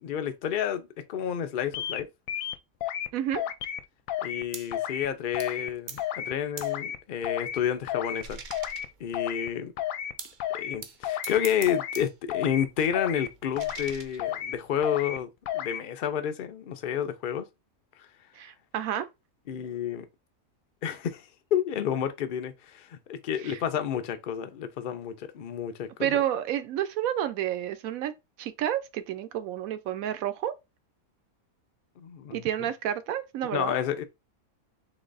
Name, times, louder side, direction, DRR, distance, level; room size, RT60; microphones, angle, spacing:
voice 1, 0.0-2.1 4.2-8.4 9.0-9.7 10.5-17.5 18.0-18.1 19.5-20.1 20.8-26.2 32.0-32.7 33.5-34.0, left 9 dB, 55° left, 0.6 m, -30 dB
sound 1, 1.7-2.0 2.3-3.1 3.3-3.8 4.1-4.4 4.7-5.1 5.3-5.7 6.0-6.3 6.6-7.0 7.2-7.6 7.9-8.2 8.5-8.9 9.1-9.5 9.8-10.1 10.4-10.8 11.0-11.4 11.7-12.0 12.3-12.7 12.9-13.3 13.6-13.9 14.2-14.6 14.8-15.2 15.5-15.8, left 11 dB, 75° left, 1.0 m, -32 dB
voice 2, 3.1-3.4 18.3-19.1 23.4-23.6 26.0-28.1 28.4-30.5 32.3-33.8, right 11 dB, 75° right, 1.0 m, -30 dB
sound 2, 4.5-4.8 5.4-5.6 5.9-6.1 6.6-6.8 7.3-9.3 10.2-10.5 10.8-12.2 12.5-14.7, right 5 dB, 50° right, 0.6 m, -45 dB
4.0 x 3.2 x 3.9 m
omnidirectional pair, 1.5 m